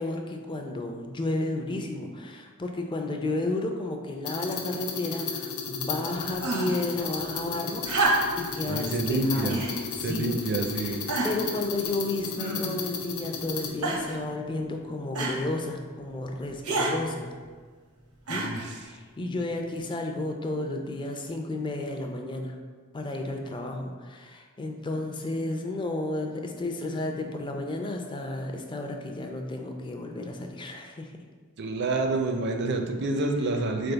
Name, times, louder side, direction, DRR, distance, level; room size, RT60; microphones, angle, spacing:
voice 1, 0.0-7.8 8.4-9.6 10.0-10.3 10.8-17.3 18.3-18.5 18.8-22.5 22.9-31.1, left 2 dB, 20° left, 3 dB, 0.4 m, -32 dB
sound 1, 4.2-13.7, left 5 dB, 80° left, 0.6 m, -34 dB
sound 2, 6.4-6.9 7.8-8.5 9.5-9.8 10.5-10.6 11.1-11.5 12.4-12.9 13.8-14.2 15.2-15.4 16.6-17.0 18.3-18.7 19.8-19.9, right 2 dB, 85° right, 0.8 m, -28 dB
voice 2, 8.7-9.6 10.0-11.0 18.3-18.7 31.6-33.9, right 2 dB, 50° right, 4 dB, 0.5 m, -28 dB
3.9 x 3.5 x 3.9 m, 1.5 s
head